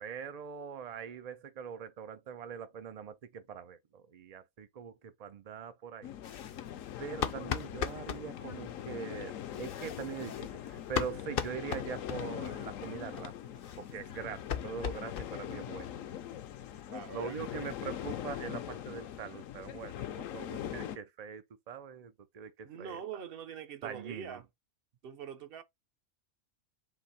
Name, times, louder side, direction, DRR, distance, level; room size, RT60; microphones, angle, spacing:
voice 1, 0.0-6.1 7.0-13.3 13.8-15.9 17.1-23.0 23.8-24.4, right 7 dB, 85° right, 0.3 m, -42 dB
sound 1, 6.0-21.0, left 11 dB, 70° left, 1.0 m, -42 dB
sound 2, 6.2-8.2 9.4-12.5 12.8-12.9 13.2-13.3 13.5-15.6 15.9-16.0 16.3-16.4 16.7-16.8 17.1-17.9, left 8 dB, 55° left, 0.6 m, -39 dB
voice 2, 16.9-17.4 22.6-24.5 25.0-25.6, right 7 dB, 55° right, 0.7 m, -44 dB
4.0 x 2.9 x 4.2 m
omnidirectional pair, 1.5 m